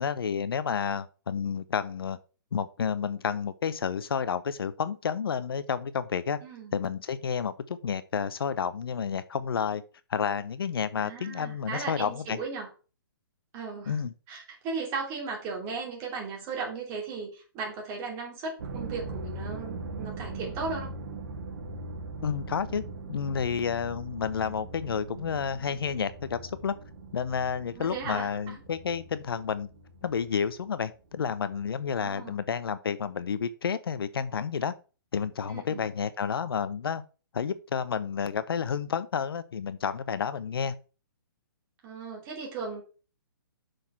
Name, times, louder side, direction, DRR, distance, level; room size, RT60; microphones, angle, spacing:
voice 1, 0.0-2.2 2.5-6.4 6.7-9.8 10.1-12.4 13.9-14.1 22.2-22.8 23.1-26.8 27.1-29.7 30.0-34.7 35.1-37.0 37.3-40.7, left 6 dB, 75° left, 0.9 m, -30 dB
voice 2, 6.4-6.7 11.0-12.7 13.5-14.0 14.3-20.9 27.7-28.5 32.0-32.4 35.5-35.8 41.8-42.8, right 4 dB, 20° right, 3.1 m, -36 dB
sound 1, 18.6-30.7 31.1-31.7, right 3 dB, 55° right, 2.1 m, -41 dB
6.6 x 6.4 x 5.7 m
hypercardioid pair, 165°, 12 cm